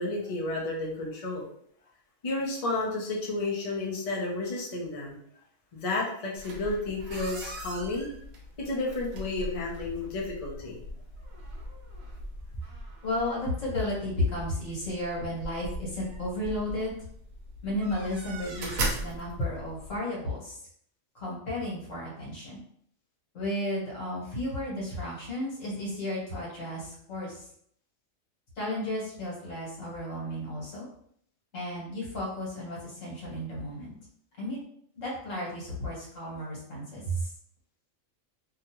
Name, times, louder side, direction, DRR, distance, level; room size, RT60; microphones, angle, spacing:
voice 1, 0.0-1.5 2.2-5.2 5.7-8.1 8.7-10.8, left 2 dB, 40° left, -3 dB, 0.5 m, -31 dB
sound 1, 6.3-20.0, right 1 dB, 90° right, 1.1 m, -39 dB
voice 2, 13.0-16.9 17.6-20.5 21.1-22.6 23.3-27.4 28.6-30.8 31.5-33.9 34.4-34.6 35.0-37.3, left 1 dB, 70° left, -4 dB, 1.5 m, -33 dB
2.8 x 2.4 x 2.9 m, 0.65 s
omnidirectional pair, 1.4 m